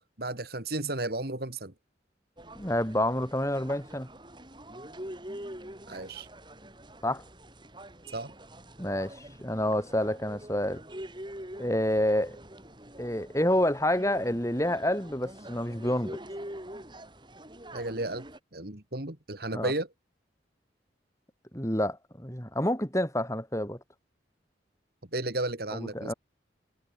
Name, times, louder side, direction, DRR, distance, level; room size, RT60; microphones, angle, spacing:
voice 1, 0.2-1.7 5.9-6.3 8.1-8.3 17.7-18.3 18.5-19.9 25.1-26.1, right 2 dB, 55° right, 2.5 m, -33 dB
sound 1, 2.4-18.4, right 1 dB, 25° right, 7.7 m, -45 dB
voice 2, 2.5-4.1 7.0-7.2 8.8-10.8 11.6-12.4 13.0-16.2 19.5-19.7 21.5-23.8 25.7-26.1, left 1 dB, 15° left, 7.9 m, -28 dB
head